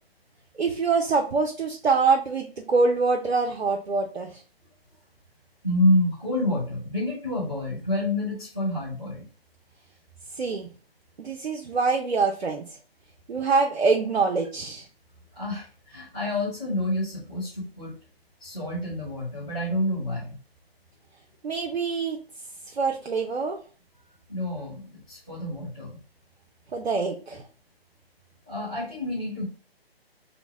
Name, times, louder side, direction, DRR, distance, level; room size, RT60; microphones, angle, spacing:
voice 1, 0.6-4.3 10.4-10.7 11.2-12.6 13.3-14.9 21.4-22.2 22.7-23.6 26.7-27.4, right 4 dB, 90° right, 2 dB, 0.7 m, -25 dB
voice 2, 5.6-9.2 15.3-17.9 18.4-20.4 24.3-26.0 28.5-29.4, left 1 dB, 5° right, -15 dB, 0.3 m, -28 dB
3.9 x 2.1 x 4.5 m, 0.37 s
hypercardioid pair, 145°, 31 cm